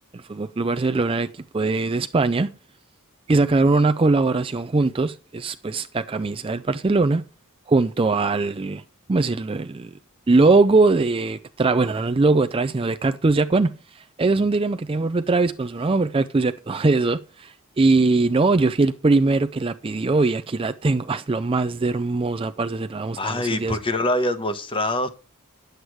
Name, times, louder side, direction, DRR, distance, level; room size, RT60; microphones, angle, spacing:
voice 1, 0.1-2.5 3.3-7.2 7.7-8.8 9.1-9.9 10.3-23.8, right 3 dB, 25° right, 0.4 m, -21 dB
voice 2, 23.2-25.1, left 1 dB, 25° left, 0.9 m, -24 dB
10.0 x 8.0 x 4.6 m
head